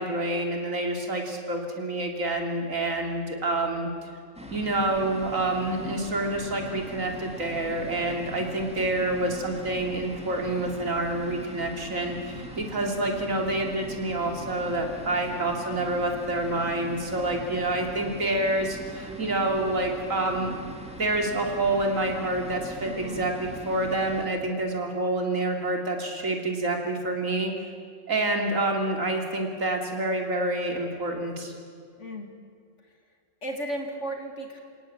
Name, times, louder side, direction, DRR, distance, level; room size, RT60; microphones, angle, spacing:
voice 1, 0.0-3.9 4.5-20.6 21.0-27.5 28.1-31.5, right 2 dB, 85° right, 2 dB, 3.5 m, -28 dB
sound 1, 4.3-24.3, right 1 dB, 5° right, 2.4 m, -42 dB
voice 2, 22.8-23.3 32.0-32.3 33.4-34.6, right 1 dB, 65° left, 3 dB, 2.9 m, -35 dB
28.5 x 18.0 x 8.9 m, 2.2 s
omnidirectional pair, 1.3 m